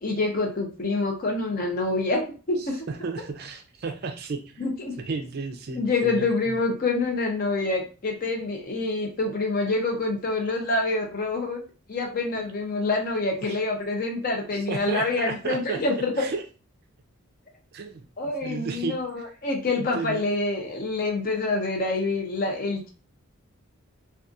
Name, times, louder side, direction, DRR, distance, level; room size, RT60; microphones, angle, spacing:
voice 1, 0.0-2.8 4.6-5.0 5.7-11.6 11.9-16.2 18.2-22.9, left 3 dB, 40° left, 1 dB, 0.5 m, -26 dB
voice 2, 2.6-4.6 5.1-6.6 12.4-12.5 13.4-13.5 14.7-15.8 16.1-16.4 17.7-18.0 18.4-19.0 19.8-20.3, right 4 dB, 45° right, 5 dB, 0.4 m, -33 dB
2.5 x 2.3 x 2.4 m, 0.35 s
head